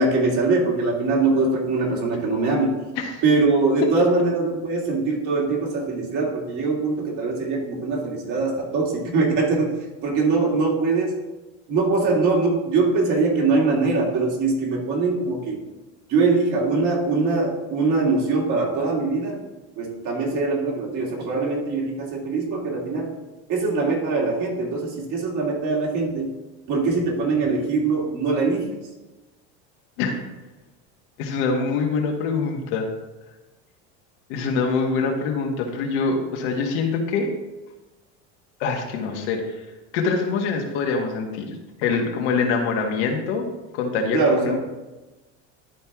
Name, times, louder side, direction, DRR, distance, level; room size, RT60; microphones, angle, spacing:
voice 1, 0.0-2.7 3.2-9.7 10.0-11.2 11.7-15.6 16.1-19.4 19.8-23.1 23.5-26.3 26.7-28.8 44.1-44.6, right 3 dB, 55° right, -2 dB, 2.6 m, -22 dB
voice 2, 31.2-32.9 34.3-37.3 38.6-39.6 39.9-43.4 43.7-44.6, left 4 dB, 80° left, 1 dB, 1.7 m, -24 dB
12.0 x 4.4 x 3.6 m, 1.1 s
supercardioid pair, 115°, 35 cm